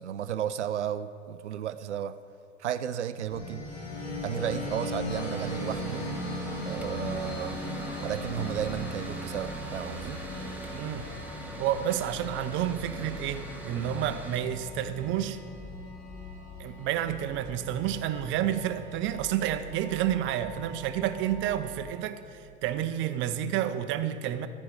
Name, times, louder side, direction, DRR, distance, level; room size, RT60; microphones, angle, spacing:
voice 1, 0.0-2.1 2.6-3.7 4.2-6.1 6.7-7.6 8.0-10.2, right 10 dB, 75° right, 13 dB, 0.5 m, -33 dB
sound 1, 3.3-21.9, left 1 dB, 65° left, 2.8 m, -39 dB
Mechanical fan, 5.1-14.4, right 1 dB, 5° right, 1.6 m, -43 dB
voice 2, 10.8-11.1 11.6-15.4 16.6-24.5, right 11 dB, 35° right, 11 dB, 0.7 m, -30 dB
14.0 x 5.4 x 8.6 m, 2.5 s
figure-of-eight pair, 80°, 35 cm